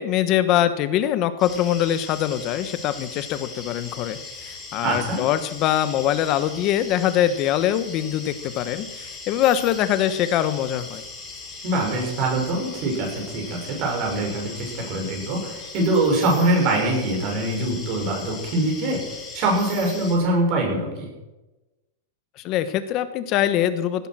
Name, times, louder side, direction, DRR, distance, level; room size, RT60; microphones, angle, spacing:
voice 1, 0.0-11.0 22.4-24.1, left 11 dB, 35° left, 12 dB, 1.3 m, -23 dB
sound 1, 1.4-20.2, left 4 dB, 15° left, 4.5 m, -39 dB
voice 2, 4.8-5.2 11.6-19.0 19.3-21.1, right 2 dB, 40° right, 0 dB, 6.5 m, -23 dB
17.0 x 11.0 x 6.3 m, 1.1 s
supercardioid pair, 155°, 0 cm